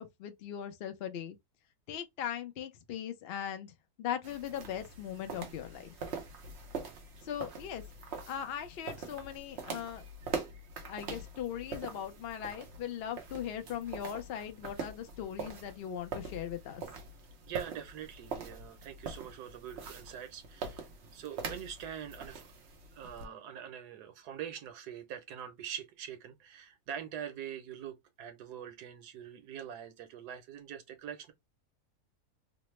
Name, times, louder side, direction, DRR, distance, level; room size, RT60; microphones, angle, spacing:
voice 1, 0.0-1.4 1.9-6.0 7.2-7.8 8.3-10.0 10.8-16.8, left 9 dB, 65° left, 0.6 m, -39 dB
sound 1, 4.2-23.2, right 5 dB, 55° right, 0.9 m, -44 dB
voice 2, 17.4-20.9 21.1-22.5 22.9-31.3, right 9 dB, 90° right, 1.3 m, -44 dB
3.2 x 2.0 x 3.1 m
omnidirectional pair, 1.6 m